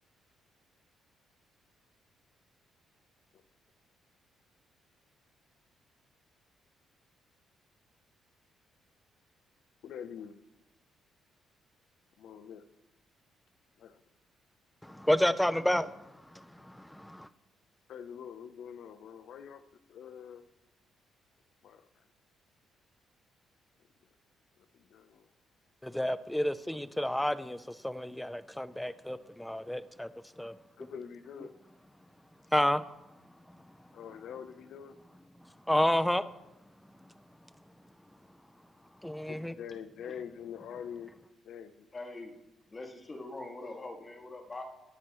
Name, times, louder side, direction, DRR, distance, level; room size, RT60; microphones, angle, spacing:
voice 1, 9.8-10.4 12.2-12.6 13.8-14.0 17.9-19.6 19.9-20.5 21.6-21.8 24.7-25.3 30.8-31.5 33.9-34.9 39.3-41.1 41.4-41.9, left 8 dB, 75° left, 0.8 m, -45 dB
voice 2, 14.8-16.0 16.3-17.3 25.8-30.1 30.4-30.6 32.5-32.8 35.7-36.2 39.0-39.5, left 1 dB, 5° left, 0.6 m, -30 dB
voice 3, 41.9-42.3 42.7-44.6, left 2 dB, 30° left, 2.2 m, -43 dB
19.0 x 10.0 x 3.2 m
cardioid pair, 90°, 0 cm